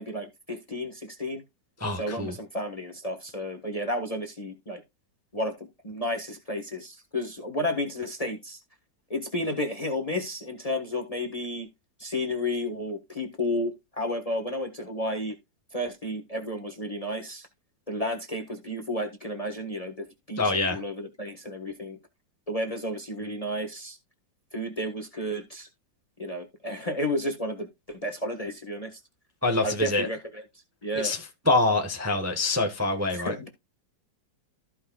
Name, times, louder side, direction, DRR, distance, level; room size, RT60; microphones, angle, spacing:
voice 1, 0.0-1.4 1.9-4.8 5.3-5.5 5.8-8.6 9.1-11.7 12.0-15.4 15.7-17.5 17.9-22.0 22.5-24.0 24.5-25.7 26.2-29.0 29.6-30.4 30.8-31.1 33.1-33.5, left 1 dB, 20° left, 1.2 m, -32 dB
voice 2, 1.8-2.3 20.4-20.8 29.4-30.1 31.0-31.2 31.5-33.3, left 2 dB, 10° right, 1.0 m, -25 dB
14.0 x 5.5 x 2.3 m
omnidirectional pair, 2.0 m